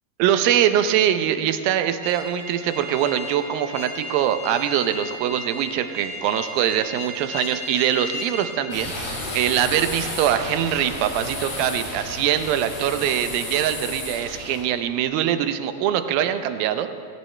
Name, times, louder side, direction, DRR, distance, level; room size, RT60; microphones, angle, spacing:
voice 1, 0.2-16.9, right 10 dB, 85° right, 9 dB, 2.5 m, -23 dB
sound 1, 2.0-8.6, left 1 dB, 45° right, 5.5 m, -35 dB
sound 2, 8.7-14.6, left 1 dB, 60° left, 5.9 m, -32 dB
19.5 x 17.0 x 3.3 m, 2.3 s
omnidirectional pair, 4.2 m